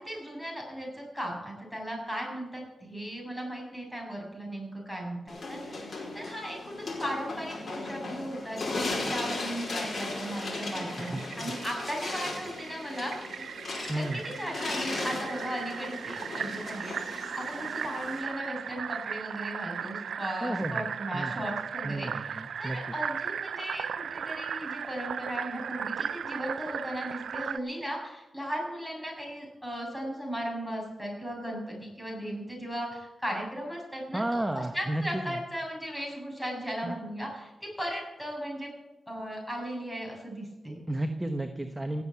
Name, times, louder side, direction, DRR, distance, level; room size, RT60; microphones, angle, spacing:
voice 1, 0.0-13.1 13.9-38.7 39.1-40.8, equal, 5° left, -2 dB, 7.1 m, -37 dB
sound 1, 5.3-18.2, left 2 dB, 55° left, 5.0 m, -37 dB
Fill (with liquid), 9.6-27.6, right 7 dB, 85° right, 0.4 m, -37 dB
voice 2, 11.0-11.5 13.9-14.2 20.4-20.9 21.1-21.5 21.8-22.8 34.1-35.4 36.8-37.0 40.9-42.0, right 1 dB, 15° right, 6 dB, 1.1 m, -32 dB
17.5 x 7.5 x 8.5 m, 1.1 s
cardioid pair, 80°, 0 cm